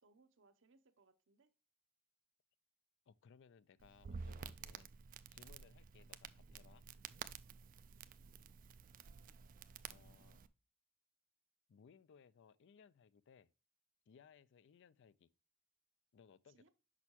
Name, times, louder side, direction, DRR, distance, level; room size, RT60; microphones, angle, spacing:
voice 1, 0.0-1.5 7.9-8.1 16.5-16.7, right 3 dB, 60° right, 0.8 m, -71 dB
voice 2, 3.1-4.9 5.3-6.8 9.9-10.4 11.7-13.5 14.1-15.3 16.1-16.7, left 6 dB, 60° left, 0.4 m, -65 dB
Crackle, 3.8-10.5, right 6 dB, 40° right, 0.3 m, -52 dB
6.3 x 5.4 x 2.8 m
head